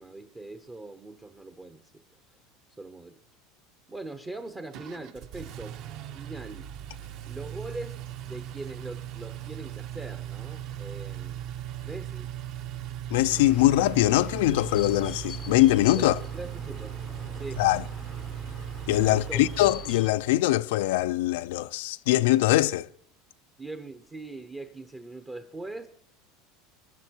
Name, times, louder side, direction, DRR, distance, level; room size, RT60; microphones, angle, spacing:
voice 1, 0.0-2.0 2.8-3.2 3.9-5.8 6.1-6.7 7.3-11.4 11.8-12.3 15.9-17.0 17.3-17.6 19.1-19.4 23.6-25.9, right 2 dB, 10° right, 0.8 m, -41 dB
Engine, 4.7-20.4, right 11 dB, 40° right, 1.0 m, -38 dB
voice 2, 13.1-16.2 17.6-17.8 18.9-22.9, left 16 dB, 75° left, 0.6 m, -22 dB
sound 1, 13.3-20.1, left 7 dB, 20° left, 0.7 m, -45 dB
23.5 x 11.5 x 4.5 m
supercardioid pair, 180°, 0 cm